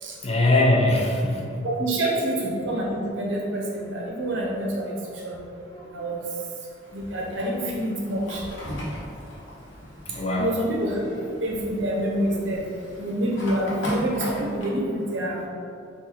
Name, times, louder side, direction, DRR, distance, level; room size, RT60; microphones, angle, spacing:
voice 1, 0.2-1.6 5.6-5.9 10.1-10.6, left 1 dB, 35° left, -1 dB, 0.5 m, -22 dB
voice 2, 1.6-5.4 5.9-6.2 6.9-8.5 10.4-11.0 11.4-12.6 13.0-15.4, right 1 dB, 70° right, -2 dB, 0.8 m, -27 dB
Fire, 6.8-14.7, left 1 dB, 85° left, 1.1 m, -38 dB
3.8 x 2.8 x 4.4 m, 2.5 s
head